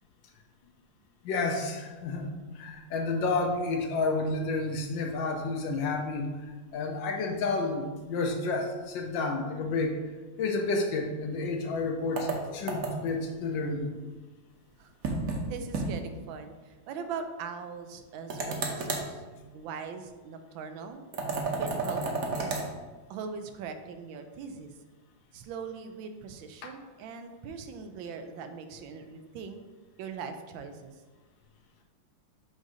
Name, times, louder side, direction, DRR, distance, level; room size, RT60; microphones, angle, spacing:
voice 1, 1.2-2.3 2.5-6.3 6.7-10.0 10.4-13.9, left 3 dB, 75° left, 3 dB, 1.4 m, -30 dB
sound 1, 12.2-13.2 15.0-15.4 15.7-15.9 16.2-16.3 18.3-19.1 21.1-22.7, right 3 dB, 55° right, 1.1 m, -31 dB
voice 2, 15.5-19.2 19.5-21.0 21.6-22.6 23.1-24.7 25.3-29.6 30.0-30.9, right 5 dB, 85° right, 7 dB, 1.4 m, -41 dB
7.8 x 2.7 x 4.8 m, 1.3 s
omnidirectional pair, 2.1 m